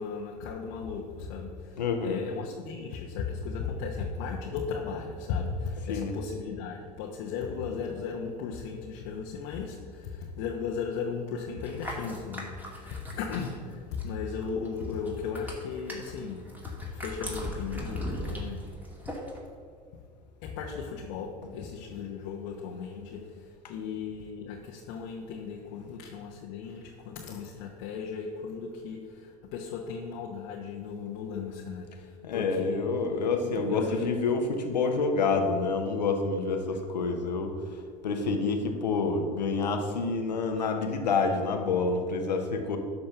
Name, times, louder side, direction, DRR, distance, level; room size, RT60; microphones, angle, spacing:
voice 1, 0.0-16.5 16.9-18.7 20.4-32.9 33.4-34.1 42.4-42.5, left 5 dB, 60° left, 0 dB, 1.1 m, -36 dB
voice 2, 1.8-2.2 5.9-6.1 32.2-37.5 38.0-42.8, left 4 dB, 85° left, 5 dB, 1.1 m, -28 dB
sound 1, 11.6-14.2 14.4-19.4, equal, 10° right, 2.6 m, -39 dB
12.0 x 4.3 x 6.7 m, 2.1 s
hypercardioid pair, 75°, 21 cm